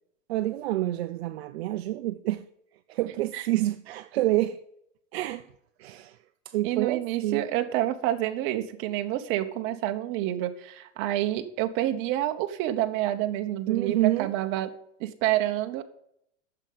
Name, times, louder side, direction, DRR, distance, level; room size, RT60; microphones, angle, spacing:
voice 1, 0.3-2.5 2.9-4.6 5.1-5.5 5.8-6.2 6.5-7.4 13.7-14.3, right 15 dB, 55° right, 0.6 m, -28 dB
voice 2, 6.6-14.7 15.0-15.8, right 13 dB, 30° right, 1.0 m, -28 dB
8.9 x 6.9 x 7.6 m
supercardioid pair, 150°, 38 cm